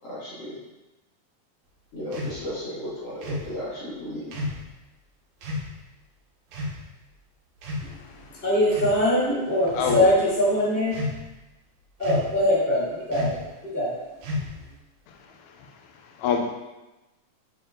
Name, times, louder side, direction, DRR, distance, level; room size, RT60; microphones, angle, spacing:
voice 1, 0.0-0.6 1.9-4.2, equal, 50° left, -8 dB, 2.4 m, -34 dB
sound 1, 2.1-2.4 3.2-3.5 4.3-4.6 5.4-5.7 6.5-6.8 7.6-8.1 8.7-9.0 9.7-10.1 10.9-11.3 12.0-12.4 13.1-13.5 14.2-14.7, left 2 dB, 75° right, 3.0 m, -31 dB
voice 2, 7.9-8.4 9.7-10.1 15.1-16.5, left 6 dB, 85° left, 3 dB, 1.6 m, -29 dB
voice 3, 8.4-10.9 12.0-13.4 13.7-13.9, left 1 dB, 20° left, -9 dB, 2.0 m, -22 dB
8.6 x 4.5 x 3.8 m, 1.0 s
omnidirectional pair, 4.3 m